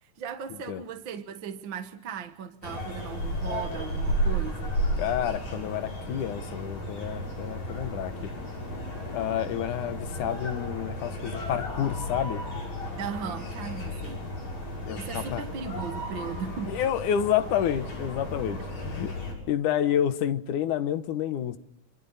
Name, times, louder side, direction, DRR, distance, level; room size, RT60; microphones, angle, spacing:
voice 1, 0.0-4.8 13.0-14.2 14.9-16.8 18.6-18.7, right 7 dB, 50° right, 1.6 m, -37 dB
sound 1, 2.6-19.3, equal, 65° left, 7.8 m, -33 dB
voice 2, 5.0-8.3 9.1-12.4 14.8-15.4 16.7-19.1 19.5-21.6, left 10 dB, 85° left, 2.7 m, -29 dB
27.5 x 25.5 x 4.1 m
omnidirectional pair, 3.5 m